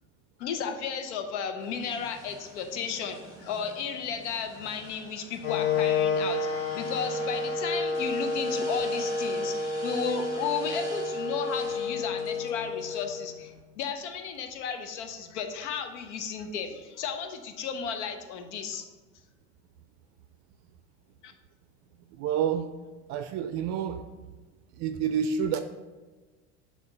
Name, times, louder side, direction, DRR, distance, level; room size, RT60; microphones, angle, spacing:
voice 1, 0.4-18.8 21.2-21.3, left 6 dB, 85° left, 6 dB, 0.7 m, -34 dB
sound 1, 1.6-13.6, right 2 dB, 10° right, 1.5 m, -48 dB
Wind instrument woodwind instrument, 5.4-13.4, left 3 dB, 65° left, 1.2 m, -30 dB
voice 2, 22.1-22.7 23.1-24.1 24.7-25.6, right 7 dB, 55° right, 8 dB, 0.4 m, -28 dB
7.0 x 2.5 x 5.4 m, 1.3 s
supercardioid pair, 105°, 34 cm